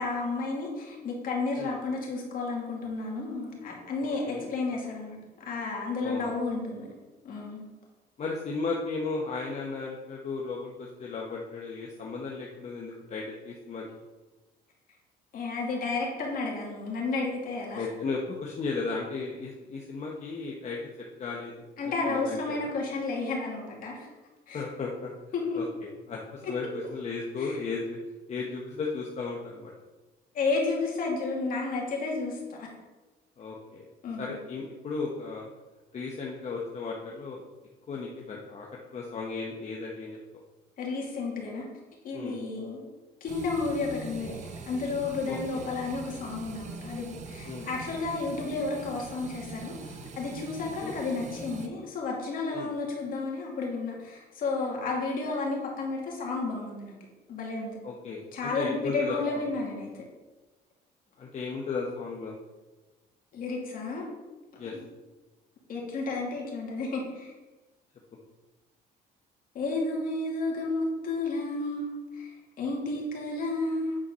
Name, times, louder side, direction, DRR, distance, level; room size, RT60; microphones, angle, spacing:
voice 1, 0.0-5.2 5.5-6.9 7.2-7.6 15.3-17.9 21.8-24.1 24.5-24.6 25.3-25.6 26.4-26.5 27.4-27.6 30.3-32.7 34.0-34.3 40.8-41.7 42.0-42.8 43.2-56.9 57.3-57.8 58.3-60.0 63.3-64.1 64.7-64.8 65.7-67.3 69.5-74.0, left 3 dB, 55° left, -2 dB, 2.6 m, -32 dB
voice 2, 4.0-4.5 6.0-6.3 8.2-13.8 17.7-20.8 21.2-21.5 21.8-22.7 24.5-25.1 25.5-28.0 28.3-29.7 33.4-33.9 34.2-35.5 35.9-37.4 37.9-38.7 38.9-40.2 42.1-42.4 45.3-45.6 47.4-47.7 50.8-51.0 52.5-52.7 57.8-59.5 61.2-62.3 64.6-64.8, left 4 dB, 40° left, -2 dB, 1.1 m, -35 dB
sound 1, 43.3-51.7, right 4 dB, 45° right, 0.9 m, -42 dB
8.8 x 4.6 x 5.6 m, 1.2 s
cardioid pair, 110°, 17 cm